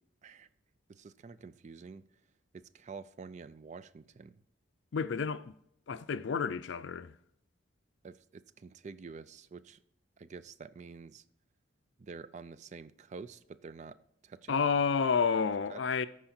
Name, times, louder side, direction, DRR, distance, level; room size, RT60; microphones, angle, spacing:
voice 1, 0.9-2.0 2.5-4.3 8.0-9.8 10.2-11.2 12.0-14.0 14.2-14.7 15.7-15.8, right 4 dB, 40° right, 0.4 m, -48 dB
voice 2, 4.9-5.5 5.9-7.1 14.5-16.1, left 5 dB, 65° left, 0.4 m, -30 dB
13.5 x 4.8 x 4.3 m
head